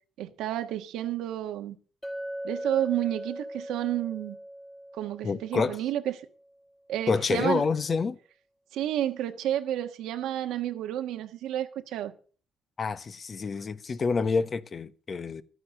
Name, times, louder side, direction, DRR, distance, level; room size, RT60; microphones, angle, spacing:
voice 1, 0.2-1.8 2.4-4.4 5.0-6.1 6.9-7.6 8.7-12.1, right 12 dB, 90° right, 1.4 m, -30 dB
Chink clink, 2.0-6.2, equal, 10° left, 1.9 m, -40 dB
voice 2, 5.2-5.8 7.1-8.2 12.8-15.4, left 4 dB, 40° left, 1.0 m, -28 dB
12.5 x 9.5 x 6.4 m
cardioid pair, 90°, 0 cm